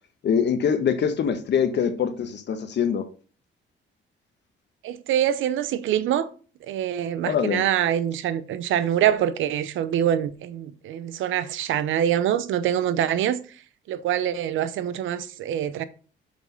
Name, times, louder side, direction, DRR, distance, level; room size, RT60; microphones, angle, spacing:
voice 1, 0.2-3.1 7.2-7.6, left 7 dB, 60° left, 1.4 m, -23 dB
voice 2, 4.8-6.3 6.7-13.4 13.9-15.8, right 10 dB, 85° right, 0.8 m, -25 dB
6.2 x 5.3 x 5.2 m
cardioid pair, 90°, 20 cm